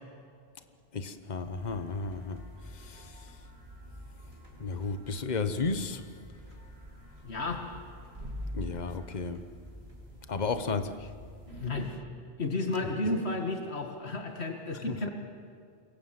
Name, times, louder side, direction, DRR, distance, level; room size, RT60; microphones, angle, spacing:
voice 1, 0.9-3.4 4.6-6.0 8.5-9.4 10.3-11.1 14.9-15.1, left 4 dB, 45° left, 10 dB, 1.3 m, -33 dB
sound 1, 1.4-11.9, equal, 75° right, 4.7 m, -46 dB
voice 2, 7.2-7.6 11.6-11.9 12.4-15.1, left 2 dB, 90° left, 3 dB, 2.3 m, -32 dB
27.5 x 22.5 x 7.7 m, 2.2 s
omnidirectional pair, 1.1 m